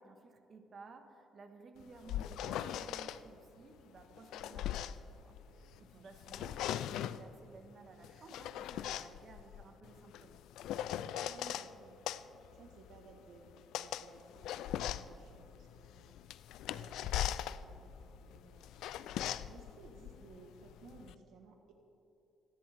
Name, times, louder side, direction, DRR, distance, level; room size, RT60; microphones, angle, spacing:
voice 1, 0.0-4.9 5.2-10.4, right 3 dB, 50° right, 5 dB, 1.6 m, -56 dB
sound 1, 1.8-3.2 4.0-5.8 6.1-7.3 8.0-11.7 12.1-21.1, left 11 dB, 85° left, 0.4 m, -40 dB
voice 2, 1.8-2.2 5.9-6.3 11.1-12.0 12.5-16.2 16.7-21.7, right 4 dB, 85° right, 3 dB, 1.4 m, -59 dB
25.5 x 10.5 x 3.6 m, 2.7 s
cardioid pair, 90°, 0 cm